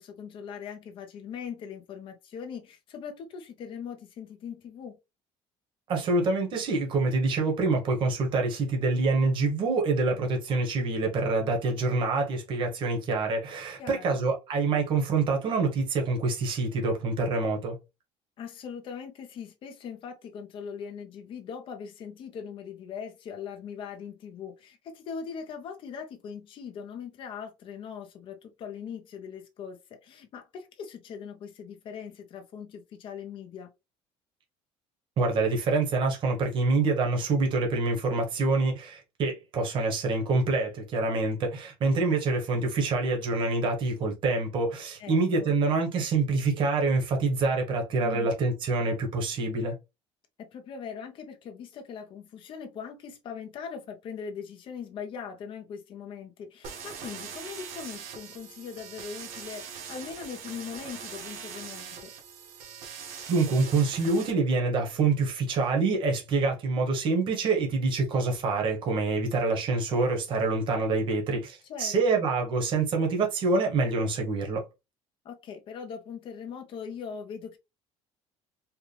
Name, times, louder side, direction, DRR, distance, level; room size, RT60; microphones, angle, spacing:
voice 1, 0.0-5.0 13.8-14.2 18.4-33.7 45.0-45.5 48.0-48.3 50.4-62.1 71.7-72.2 75.2-77.6, left 7 dB, 45° left, 0.9 m, -41 dB
voice 2, 5.9-17.8 35.2-49.8 63.3-74.6, right 3 dB, 40° right, 1.3 m, -26 dB
sound 1, 56.6-64.3, right 6 dB, 75° right, 1.8 m, -42 dB
4.7 x 2.5 x 3.3 m
cardioid pair, 170°, 12 cm